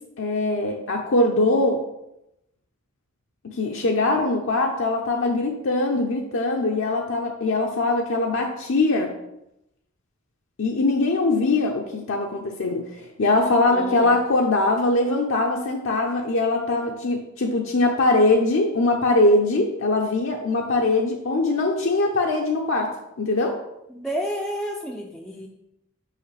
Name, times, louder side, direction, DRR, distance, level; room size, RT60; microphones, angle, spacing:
voice 1, 0.2-1.8 3.5-9.1 10.6-22.9 23.2-23.6, left 2 dB, 65° left, 1 dB, 0.6 m, -22 dB
voice 2, 13.7-14.2 23.9-25.5, equal, 5° left, -1 dB, 0.4 m, -31 dB
5.7 x 5.6 x 3.3 m, 0.85 s
head